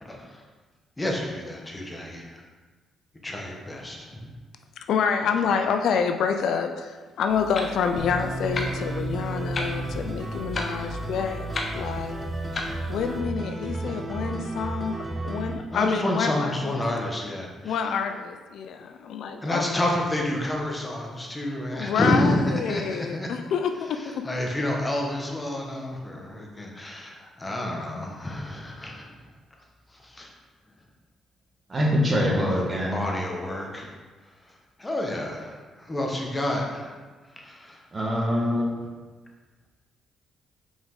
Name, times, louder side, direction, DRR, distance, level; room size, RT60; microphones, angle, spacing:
voice 1, 0.0-0.4 1.0-2.4 3.2-4.3 13.8-14.0 15.7-17.8 19.4-23.3 24.2-29.1 30.0-30.3 32.3-33.9 34.8-36.9 37.4-37.8, left 1 dB, 15° left, 0 dB, 1.2 m, -29 dB
voice 2, 4.9-11.5 11.7-12.2 12.9-15.0 15.2-16.8 17.6-19.7 21.7-24.3, left 6 dB, 75° left, 6 dB, 0.4 m, -27 dB
Clock, 7.3-13.2, left 3 dB, 40° left, 0.9 m, -36 dB
sound 1, 8.0-15.5, right 2 dB, 15° right, 1.0 m, -32 dB
voice 3, 31.7-33.0 37.9-38.8, equal, 30° right, -2 dB, 1.5 m, -24 dB
5.2 x 4.9 x 3.9 m, 1.3 s
cardioid pair, 90°, 0 cm